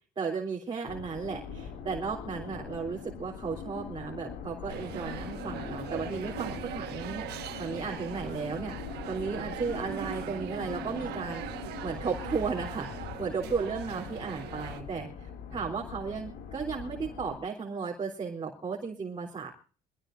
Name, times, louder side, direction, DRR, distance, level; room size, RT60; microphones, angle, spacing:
voice 1, 0.2-7.3 7.6-8.8 9.1-19.5, right 5 dB, 30° right, -2 dB, 3.5 m, -35 dB
sound 1, 0.8-17.4, left 6 dB, 80° left, 2.7 m, -41 dB
sound 2, 4.7-14.8, right 12 dB, 80° right, 1.5 m, -41 dB
24.5 x 16.5 x 2.6 m, 0.40 s
cardioid pair, 110°, 17 cm